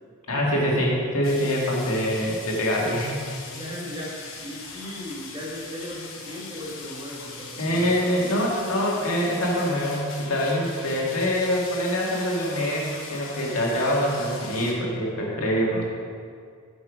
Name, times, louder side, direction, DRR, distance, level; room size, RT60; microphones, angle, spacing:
voice 1, 0.3-3.2 7.6-15.9, equal, 80° left, -2 dB, 1.9 m, -24 dB
sound 1, 1.2-14.7, left 4 dB, 65° left, 1.2 m, -40 dB
voice 2, 3.5-8.5, equal, 20° right, -5 dB, 1.9 m, -37 dB
9.1 x 6.6 x 5.0 m, 2.2 s
head